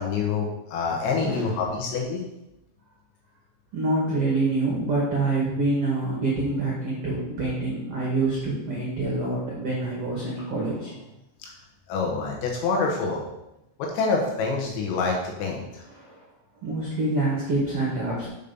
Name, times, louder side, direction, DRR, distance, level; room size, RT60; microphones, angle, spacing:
voice 1, 0.0-2.2 11.4-11.5 11.9-13.2 13.8-15.8, left 4 dB, 80° left, -1 dB, 3.6 m, -26 dB
voice 2, 1.2-1.6 3.7-11.0 15.9-16.2 16.6-18.3, right 2 dB, 45° right, -4 dB, 2.0 m, -26 dB
7.5 x 5.3 x 6.9 m, 0.89 s
omnidirectional pair, 5.2 m